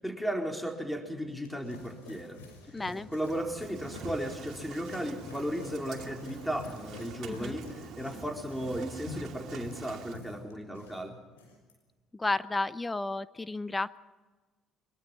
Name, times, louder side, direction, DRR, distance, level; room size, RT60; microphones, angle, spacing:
voice 1, 0.0-2.4 3.1-11.2, equal, 5° left, 2 dB, 4.1 m, -35 dB
sound 1, 1.1-11.0 11.3-11.7, left 2 dB, 90° left, 6.2 m, -48 dB
voice 2, 2.7-3.1 7.3-7.6 12.1-14.0, left 2 dB, 20° left, 16 dB, 0.9 m, -32 dB
Engine starting, 3.2-10.2, right 6 dB, 60° right, 2.4 m, -46 dB
24.0 x 22.0 x 5.7 m, 1.3 s
hypercardioid pair, 60°, 0 cm